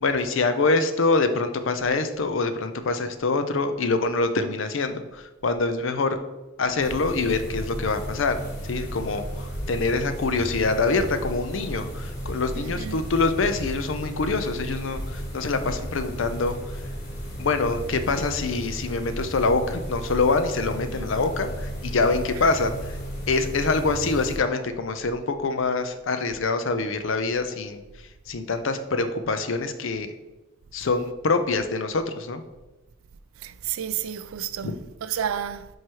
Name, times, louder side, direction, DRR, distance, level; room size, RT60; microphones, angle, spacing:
voice 1, 0.0-6.2 6.6-16.5 17.4-23.0 23.3-27.8 28.3-30.1 30.7-32.4 34.6-34.7, left 3 dB, 70° left, 0.6 m, -25 dB
sound 1, 6.8-24.4, equal, 50° left, 1.4 m, -34 dB
voice 2, 12.5-13.0 33.4-34.7 35.0-35.7, right 9 dB, 90° right, 0.4 m, -31 dB
4.7 x 4.6 x 4.5 m
head